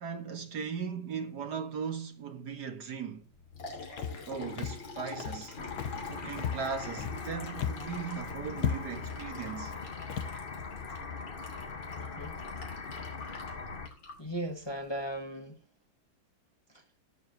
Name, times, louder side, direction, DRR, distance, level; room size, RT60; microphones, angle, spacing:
voice 1, 0.0-3.3 4.3-5.6 5.9-9.8, right 6 dB, 60° right, 1.9 m, -38 dB
Liquid, 3.2-15.1, left 4 dB, 80° left, 3.5 m, -46 dB
Walk footsteps, 4.0-4.3 4.6-4.9 5.2-5.5 5.8-6.1 6.4-7.3 7.6-7.9 8.2-8.3 8.6-9.1 9.6-9.8 10.1-10.4, left 8 dB, 60° left, 1.5 m, -35 dB
sound 1, 5.6-13.9, left 5 dB, 35° left, 1.1 m, -41 dB
voice 2, 12.0-12.4 14.2-15.6 16.7-16.8, right 1 dB, 15° left, 1.6 m, -38 dB
18.5 x 7.2 x 2.8 m
omnidirectional pair, 2.0 m